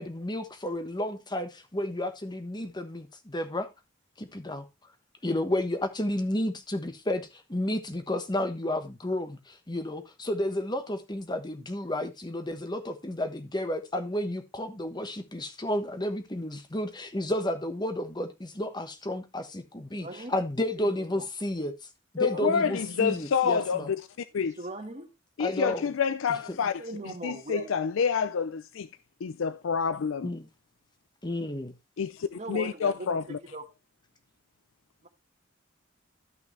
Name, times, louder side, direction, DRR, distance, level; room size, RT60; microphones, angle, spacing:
voice 1, 0.0-3.7 4.2-4.7 5.2-21.7 22.1-23.9 25.4-25.8 30.2-30.5 31.2-31.7, left 1 dB, 20° left, 1.2 m, -32 dB
voice 2, 19.9-20.3 20.8-21.3 22.3-22.8 24.3-25.1 26.8-27.7 32.3-33.7 35.0-35.1, right 2 dB, 35° right, 1.5 m, -40 dB
voice 3, 22.2-24.0 24.3-24.6 25.4-28.9 29.2-30.3 32.0-33.4, left 6 dB, 85° left, 0.5 m, -28 dB
13.5 x 5.8 x 3.2 m
head